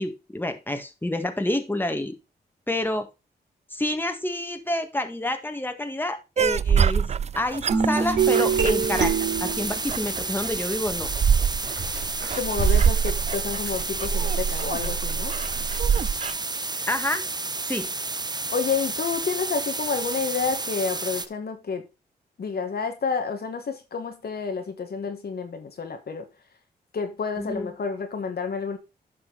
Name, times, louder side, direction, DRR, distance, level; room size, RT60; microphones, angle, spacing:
voice 1, 0.0-2.1 2.7-3.1 3.7-7.1 7.3-9.1 9.4-11.1 16.9-17.3 17.6-17.9 27.4-27.7, left 1 dB, 10° left, 1.6 m, -28 dB
sound 1, 6.4-16.3, right 7 dB, 40° right, 0.4 m, -26 dB
sound 2, 7.7-10.1 10.8-16.0, right 6 dB, 80° right, 2.8 m, -26 dB
sound 3, 8.2-21.3, right 3 dB, 25° right, 0.8 m, -31 dB
voice 2, 12.3-15.4 18.5-21.9 22.4-26.3 26.9-28.8, left 5 dB, 60° left, 1.5 m, -29 dB
9.9 x 5.6 x 3.9 m
cardioid pair, 55°, 18 cm